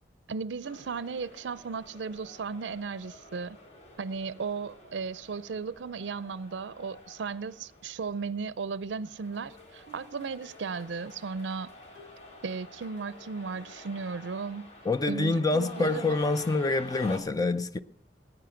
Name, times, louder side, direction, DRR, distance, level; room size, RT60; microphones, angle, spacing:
voice 1, 0.3-3.6 4.0-11.7 12.4-14.7 15.1-16.2, right 5 dB, 80° right, 0.5 m, -35 dB
sound 1, 0.6-17.2, left 2 dB, 40° left, 4.5 m, -49 dB
Plucked string instrument, 9.3-11.3 11.9-14.7 15.1-15.2 15.5-15.6, left 2 dB, 85° left, 3.7 m, -57 dB
voice 2, 14.9-17.8, left 3 dB, 20° left, 0.5 m, -26 dB
19.0 x 9.6 x 5.7 m
head